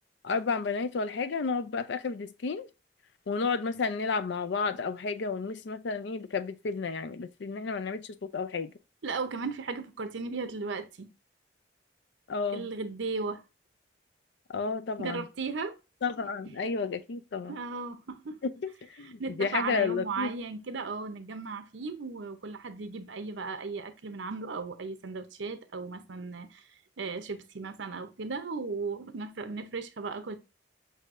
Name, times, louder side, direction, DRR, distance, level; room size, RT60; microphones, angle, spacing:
voice 1, 0.2-2.7 3.3-8.7 12.3-12.7 14.5-15.2 16.0-17.6 18.4-18.5 18.9-20.3, left 4 dB, 70° left, 0.4 m, -31 dB
voice 2, 9.0-11.1 12.5-13.4 15.0-15.7 16.4-16.6 17.5-18.4 19.0-26.6 27.0-30.4, right 4 dB, 85° right, 0.7 m, -36 dB
6.3 x 2.7 x 2.5 m
head